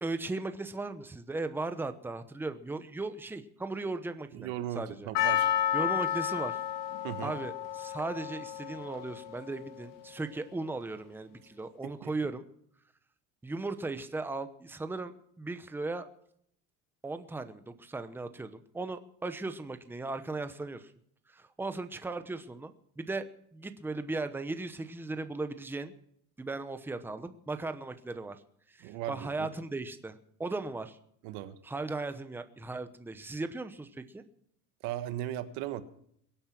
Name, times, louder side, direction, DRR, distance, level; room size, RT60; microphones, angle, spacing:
voice 1, 0.0-4.5 4.8-5.1 5.7-6.6 7.2-12.4 13.4-16.1 17.0-20.9 21.3-23.3 23.5-25.9 26.4-28.4 28.7-31.0 31.6-34.2, right 3 dB, 5° right, 9 dB, 0.9 m, -37 dB
voice 2, 4.3-5.6 7.0-7.3 12.0-12.1 28.8-29.5 31.2-31.6 34.8-35.8, right 12 dB, 90° right, 11 dB, 1.5 m, -37 dB
Percussion, 5.1-10.1, left 11 dB, 60° left, 1.6 m, -32 dB
22.5 x 8.8 x 5.9 m, 0.68 s
cardioid pair, 150°, 37 cm